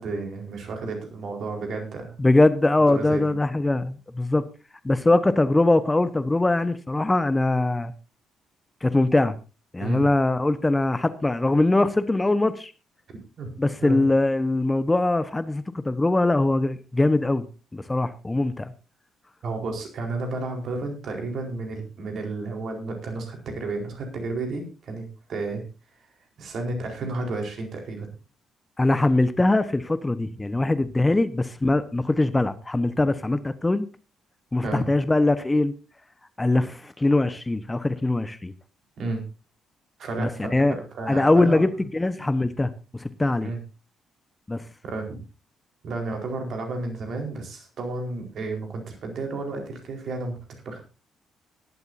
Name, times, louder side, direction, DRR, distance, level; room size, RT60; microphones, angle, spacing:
voice 1, 0.0-2.1 2.9-3.3 9.8-10.1 13.4-13.5 13.8-14.0 19.4-25.6 26.4-28.1 34.6-34.8 39.0-39.2 40.0-40.5 40.9-41.6 43.4-43.6 44.8-45.2 45.8-50.4 50.6-50.8, right 3 dB, 55° right, 3 dB, 4.4 m, -32 dB
voice 2, 2.2-4.4 4.8-7.9 8.8-9.4 9.7-12.7 13.6-17.5 17.7-18.7 28.8-33.9 34.5-35.7 36.4-38.5 40.2-40.8 41.1-43.5 44.5-44.6, left 2 dB, 20° left, 13 dB, 1.1 m, -22 dB
19.5 x 12.0 x 2.7 m, 0.30 s
hypercardioid pair, 45°, 0 cm